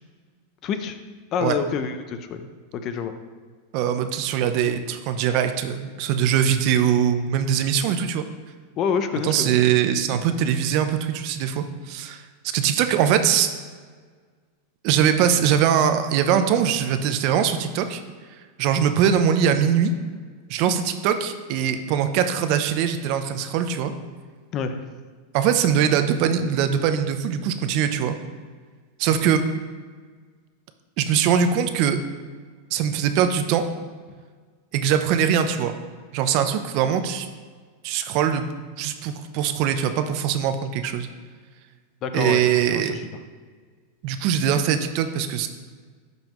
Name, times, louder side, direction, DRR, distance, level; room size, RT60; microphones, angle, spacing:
voice 1, 0.6-1.0 1.3-2.5 2.7-3.1 8.8-9.5 24.5-24.8 29.2-29.4 42.0-43.1, left 6 dB, 35° left, 9 dB, 0.6 m, -27 dB
voice 2, 3.7-8.2 9.2-12.3 12.5-13.5 14.8-18.0 18.6-19.9 20.5-23.9 25.3-28.2 29.0-29.4 31.0-32.0 32.7-33.6 34.7-35.8 36.1-37.3 37.8-38.5 38.8-41.1 42.1-43.0 44.0-45.5, right 8 dB, 50° right, 9 dB, 0.6 m, -22 dB
12.0 x 5.4 x 3.1 m, 1.6 s
supercardioid pair, 135°, 0 cm